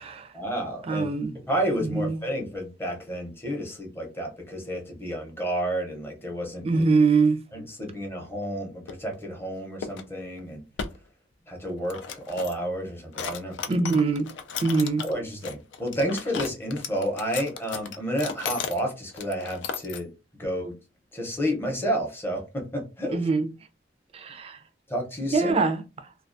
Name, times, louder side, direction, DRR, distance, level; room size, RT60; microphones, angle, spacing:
voice 1, 0.3-1.1 1.5-6.8 7.5-10.6 11.5-13.5 15.0-20.1 20.4-20.7 21.1-23.2 24.9-25.5, equal, 15° left, 0.6 m, -30 dB
voice 2, 0.9-1.3 1.9-2.2 6.6-7.4 13.7-14.3 14.6-15.0 23.1-23.5 24.1-24.6 25.3-25.8, right 4 dB, 35° right, 0.3 m, -23 dB
sound 1, 8.9-9.2 9.8-10.0 10.4-10.5 10.8-11.0 11.7-12.7 13.1-15.1 15.4-18.8 19.1-20.0, left 6 dB, 90° left, 0.3 m, -35 dB
2.3 x 2.2 x 2.5 m
head